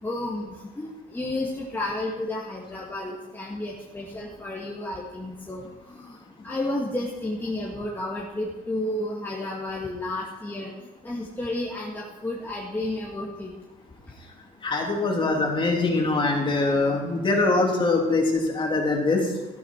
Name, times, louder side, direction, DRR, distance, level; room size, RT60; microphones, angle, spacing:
voice 1, 0.0-5.6 5.9-6.2 6.4-13.5, left 1 dB, 10° left, -4 dB, 2.1 m, -32 dB
voice 2, 14.6-19.3, left 3 dB, 30° left, 0 dB, 3.4 m, -23 dB
13.0 x 12.5 x 4.7 m, 1.2 s
cardioid pair, 110°, 17 cm